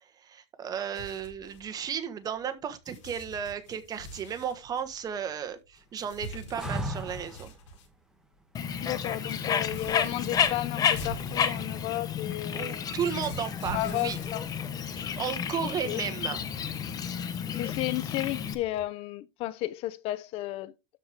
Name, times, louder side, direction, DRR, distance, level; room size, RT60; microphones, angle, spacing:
voice 1, 0.0-7.5 12.5-14.2 14.9-16.4, right 8 dB, 25° right, 1.4 m, -34 dB
sound 1, 0.9-2.5 2.9-7.9 8.3-8.4 8.6-18.8, equal, 85° left, 4.8 m, -46 dB
sound 2, 6.5-7.5 10.1-10.7, equal, 5° right, 1.6 m, -35 dB
Bird, 8.5-18.5, left 7 dB, 25° left, 1.0 m, -31 dB
voice 2, 8.8-12.9 13.7-14.5 15.8-16.0 17.5-20.7, left 16 dB, 40° left, 0.5 m, -33 dB
12.5 x 4.7 x 3.6 m
supercardioid pair, 140°, 15 cm